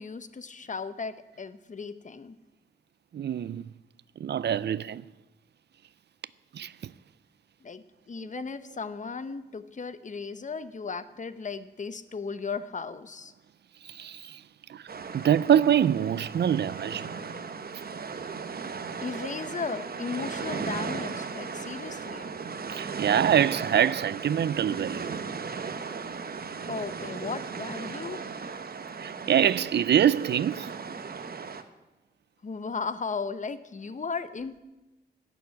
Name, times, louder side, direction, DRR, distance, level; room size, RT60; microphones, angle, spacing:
voice 1, 0.0-2.4 7.6-13.3 19.0-22.2 26.7-28.2 32.4-34.6, left 5 dB, 45° left, 0.9 m, -36 dB
voice 2, 3.1-3.7 4.2-5.0 6.5-6.9 8.2-8.3 13.8-14.4 14.7-14.9 15.1-17.2 22.7-25.2 29.0-30.8, right 9 dB, 80° right, 0.4 m, -25 dB
sound 1, 14.9-31.6, right 5 dB, 65° right, 1.0 m, -36 dB
15.5 x 7.0 x 9.8 m
wide cardioid pair, 95°, 17 cm